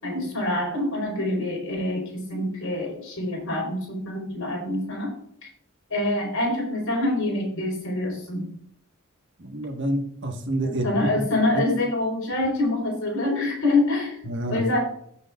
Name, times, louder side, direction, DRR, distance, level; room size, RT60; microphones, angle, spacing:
voice 1, 0.0-5.1 5.9-8.5 10.6-14.2 14.5-14.8, left 2 dB, 75° left, 0 dB, 4.0 m, -26 dB
voice 2, 9.4-11.2 11.5-11.6 14.2-14.6, right 1 dB, 60° right, 4 dB, 1.4 m, -28 dB
18.5 x 6.5 x 2.4 m, 0.67 s
head